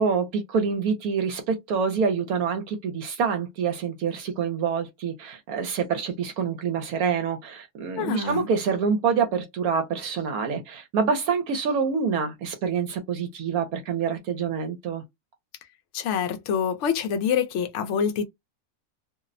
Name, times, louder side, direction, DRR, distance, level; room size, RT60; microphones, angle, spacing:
voice 1, 0.0-15.0, right 6 dB, 75° right, 1.0 m, -26 dB
voice 2, 8.0-8.5 15.9-18.2, left 7 dB, 65° left, 0.7 m, -26 dB
2.6 x 2.0 x 2.4 m
omnidirectional pair, 1.6 m